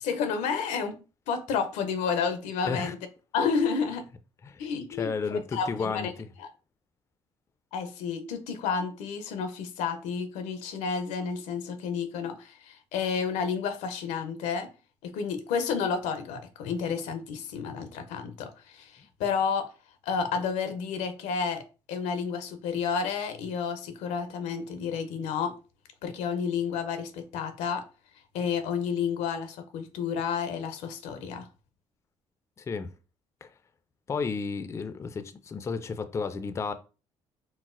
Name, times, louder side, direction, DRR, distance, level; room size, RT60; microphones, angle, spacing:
voice 1, 0.0-1.0 1.3-3.0 3.3-4.0 4.6-6.1 6.4-6.5 7.7-14.7 15.0-19.7 20.0-25.5 26.0-27.8 28.3-31.5, left 6 dB, 85° left, 0.5 m, -31 dB
voice 2, 5.0-6.1 32.6-32.9 33.4-33.5 34.1-36.7, left 5 dB, 25° left, 0.3 m, -32 dB
3.9 x 2.1 x 2.4 m
cardioid pair, 85°, 12 cm